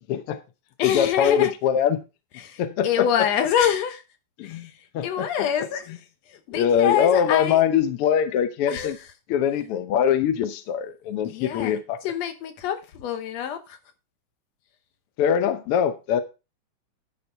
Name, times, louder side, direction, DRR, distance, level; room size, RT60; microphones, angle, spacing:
voice 1, 0.1-0.4 0.8-2.0 2.6-3.1 4.4-5.5 6.5-9.0 9.3-12.0 15.2-16.2, left 8 dB, 80° left, 1.3 m, -23 dB
voice 2, 0.8-1.5 2.4-4.0 4.4-5.9 6.3-7.6 8.7-9.1 11.2-13.8, left 9 dB, 65° left, 2.1 m, -26 dB
11.0 x 5.5 x 4.5 m
omnidirectional pair, 3.6 m